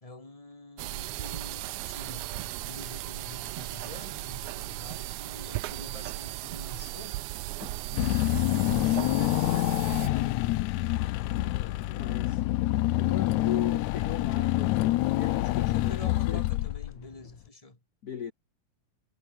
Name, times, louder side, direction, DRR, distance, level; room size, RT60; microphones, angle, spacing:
voice 1, 0.0-7.2 8.4-10.4 15.7-17.8, left 2 dB, 10° left, 2.5 m, -47 dB
sound 1, 0.8-10.1, right 18 dB, 80° right, 2.1 m, -36 dB
voice 2, 7.6-8.2 11.4-12.4 13.0-16.5 18.0-18.3, left 8 dB, 50° left, 1.2 m, -39 dB
Car / Engine, 8.0-17.1, left 17 dB, 75° left, 2.0 m, -27 dB
omnidirectional pair, 3.4 m